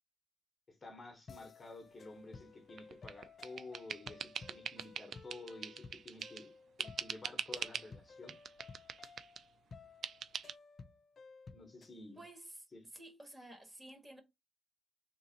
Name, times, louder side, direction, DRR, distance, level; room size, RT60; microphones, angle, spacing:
voice 1, 0.7-6.5 6.8-8.3 11.5-12.2 12.7-12.8, left 2 dB, 30° left, 1.1 m, -51 dB
sound 1, 1.3-12.0, left 4 dB, 45° left, 0.5 m, -56 dB
sound 2, 2.8-6.5 6.8-7.9 8.3-9.5 10.0-10.5, right 7 dB, 60° right, 0.4 m, -43 dB
voice 2, 12.1-12.6 12.9-14.2, right 1 dB, 20° right, 1.7 m, -52 dB
3.7 x 2.7 x 4.1 m
cardioid pair, 90°, 0 cm